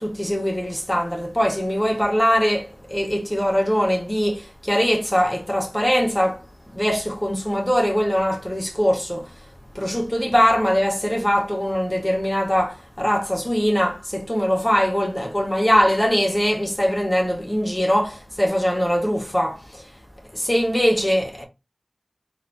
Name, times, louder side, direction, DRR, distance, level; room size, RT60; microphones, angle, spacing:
voice 1, 0.0-9.3 9.7-19.8 20.3-21.4, equal, 15° left, 1.3 m, -22 dB
4.0 x 2.7 x 4.5 m
wide cardioid pair, 55°, 0 cm